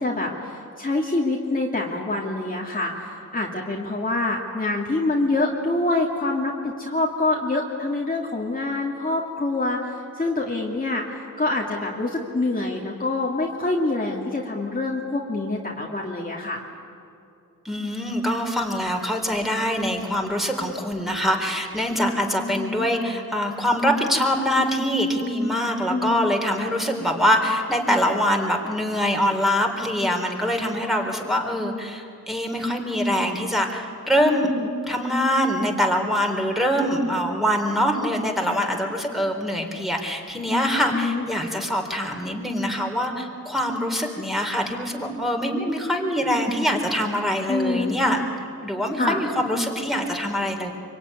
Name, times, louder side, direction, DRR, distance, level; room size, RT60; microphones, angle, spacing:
voice 1, 0.0-16.6 22.4-22.9 25.9-26.4 34.2-34.7 40.9-41.3 47.5-48.0 49.0-49.2, left 2 dB, 25° left, -2 dB, 2.5 m, -26 dB
voice 2, 17.6-34.5 34.9-48.3 48.6-50.7, equal, ahead, 1 dB, 3.8 m, -24 dB
25.0 x 24.0 x 9.7 m, 2.6 s
wide cardioid pair, 95°, 34 cm